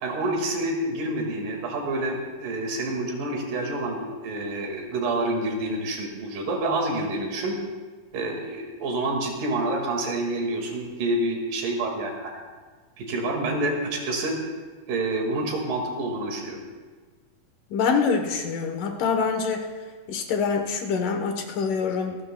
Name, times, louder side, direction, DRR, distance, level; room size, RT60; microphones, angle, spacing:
voice 1, 0.0-7.6 8.1-12.4 13.0-14.4 14.9-16.6, right 2 dB, 85° right, 1 dB, 3.7 m, -28 dB
voice 2, 17.7-19.7 20.1-22.2, left 5 dB, 75° left, 4 dB, 2.7 m, -25 dB
26.0 x 13.0 x 2.2 m, 1.4 s
omnidirectional pair, 3.8 m